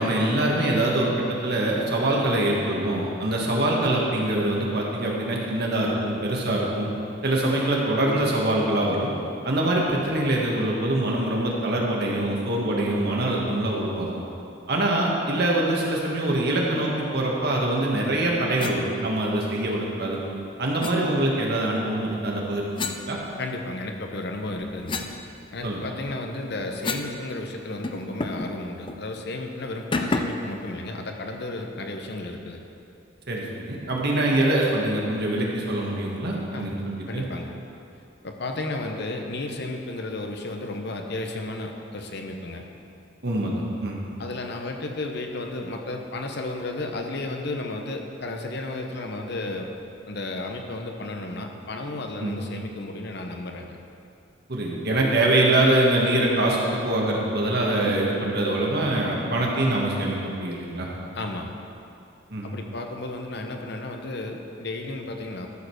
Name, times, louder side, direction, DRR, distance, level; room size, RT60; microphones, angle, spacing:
voice 1, 0.0-6.9 7.2-9.1 9.4-14.1 14.7-20.2 20.6-23.2 25.6-25.8 33.3-37.2 43.2-44.0 52.2-52.3 54.5-60.9 62.3-62.5, right 1 dB, 60° right, -2 dB, 1.7 m, -24 dB
sound 1, 18.6-18.8 20.8-21.0 22.7-23.8 24.3-27.2 27.4-27.5 27.8-28.5 28.9-29.0 29.9-30.5, left 3 dB, 25° left, 0.5 m, -31 dB
voice 2, 23.4-25.1 25.5-32.6 36.5-36.8 37.1-37.6 38.2-42.7 44.2-49.7 50.1-53.8 61.1-61.5 62.4-65.5, left 2 dB, 60° left, 3 dB, 0.9 m, -33 dB
13.0 x 5.1 x 6.4 m, 2.7 s
head